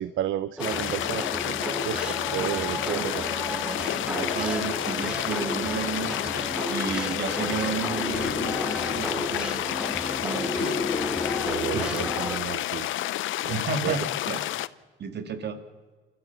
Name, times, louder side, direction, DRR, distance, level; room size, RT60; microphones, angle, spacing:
voice 1, 0.0-3.3 10.6-10.9 11.4-12.9 13.4-13.5 13.8-14.0, right 13 dB, 75° right, 15 dB, 0.7 m, -32 dB
sound 1, 0.6-14.7, left 14 dB, 80° left, 0.7 m, -30 dB
sound 2, 0.6-12.4, right 1 dB, 5° right, 1.2 m, -34 dB
voice 2, 3.4-9.6 10.2-10.7 11.7-12.1 13.5-14.4 15.0-15.6, right 5 dB, 60° right, 9 dB, 2.2 m, -33 dB
sound 3, 8.1-12.7, left 5 dB, 25° left, 0.8 m, -34 dB
29.0 x 13.0 x 7.0 m, 1.4 s
cardioid pair, 90°, 20 cm